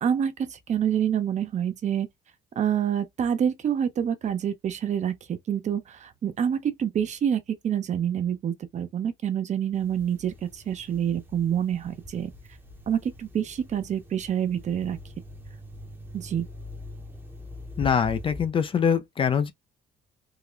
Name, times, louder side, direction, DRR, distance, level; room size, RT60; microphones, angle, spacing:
voice 1, 0.0-2.1 2.6-12.3 12.9-15.0 16.1-16.5, right 9 dB, 45° right, 0.7 m, -27 dB
sound 1, 9.7-18.5, left 1 dB, 10° right, 0.8 m, -43 dB
voice 2, 17.8-19.5, left 7 dB, 30° left, 0.4 m, -23 dB
3.7 x 2.1 x 3.1 m
cardioid pair, 110°, 17 cm